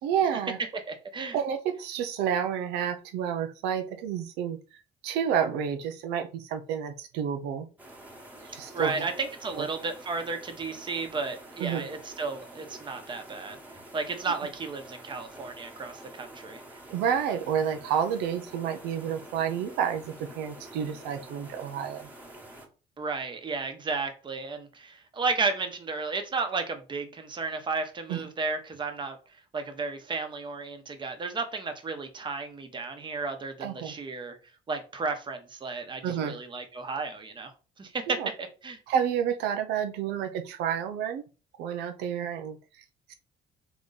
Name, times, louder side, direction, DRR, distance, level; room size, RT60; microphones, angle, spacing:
voice 1, 0.0-0.6 1.3-7.7 8.4-9.0 9.6-9.7 11.6-11.9 16.9-22.1 28.1-28.3 33.6-33.9 36.0-36.4 38.1-38.3 38.9-41.2 41.6-43.1, right 8 dB, 90° right, 0.6 m, -30 dB
voice 2, 0.9-1.4 8.7-13.6 13.9-16.6 23.0-29.2 29.5-34.4 34.7-37.5 37.8-38.8, right 4 dB, 30° right, 0.9 m, -33 dB
sound 1, 7.8-22.7, right 1 dB, 10° right, 1.2 m, -48 dB
3.7 x 3.0 x 3.9 m
cardioid pair, 110°, 17 cm